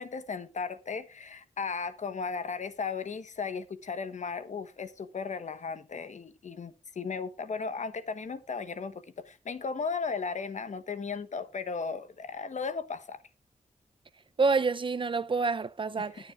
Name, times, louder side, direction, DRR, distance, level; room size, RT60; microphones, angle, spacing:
voice 1, 0.0-13.2 16.0-16.2, left 5 dB, 60° left, 1.2 m, -36 dB
voice 2, 14.4-16.3, right 4 dB, 40° right, 0.5 m, -28 dB
19.5 x 7.2 x 2.4 m
wide cardioid pair, 115°, 13 cm